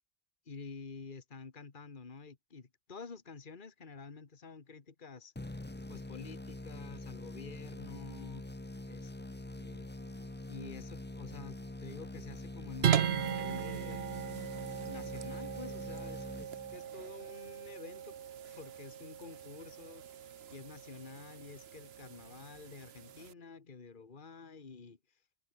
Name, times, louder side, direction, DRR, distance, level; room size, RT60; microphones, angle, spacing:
voice 1, 0.5-5.6 5.9-8.5 8.9-9.1 9.4-9.9 10.5-14.1 14.9-18.2 18.5-25.0, left 4 dB, 50° left, 1.8 m, -49 dB
sound 1, 5.4-17.1, left 2 dB, 10° left, 0.7 m, -45 dB
Wind instrument woodwind instrument, 9.8-15.9, right 1 dB, 50° right, 5.2 m, -65 dB
sound 2, 12.8-23.3, right 9 dB, 70° right, 1.1 m, -38 dB
omnidirectional pair, 1.1 m